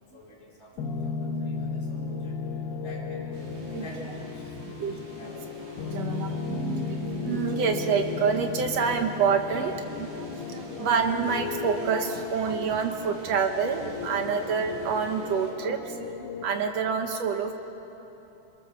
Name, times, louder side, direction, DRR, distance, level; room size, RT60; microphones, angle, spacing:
voice 1, 0.1-2.4 2.8-3.4 3.7-5.5, equal, 20° left, -6 dB, 4.6 m, -48 dB
sound 1, 0.8-16.4, left 5 dB, 75° left, 3.7 m, -35 dB
sound 2, 3.3-15.5, right 2 dB, 80° right, 5.9 m, -47 dB
voice 2, 5.9-17.5, right 6 dB, 65° right, 5 dB, 1.7 m, -27 dB
29.0 x 22.0 x 6.9 m, 3.0 s
omnidirectional pair, 4.6 m